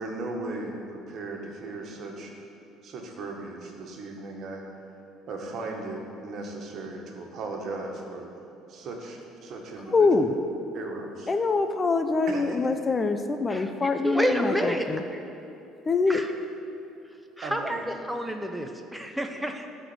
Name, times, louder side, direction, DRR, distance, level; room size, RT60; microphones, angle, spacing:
voice 1, 0.0-2.3 2.8-4.9 5.3-6.0 6.2-8.2 8.7-10.2 10.7-11.3 12.3-12.6 17.4-17.8, right 2 dB, 55° right, 1 dB, 1.7 m, -37 dB
voice 2, 9.9-10.3 11.3-14.5 14.9-15.0 15.9-16.2, left 3 dB, 30° left, 8 dB, 0.6 m, -24 dB
voice 3, 13.5-15.2 16.1-16.3 17.4-17.8 18.1-19.7, equal, 5° right, 4 dB, 0.8 m, -29 dB
12.0 x 4.4 x 8.0 m, 2.8 s
hypercardioid pair, 60°, 0 cm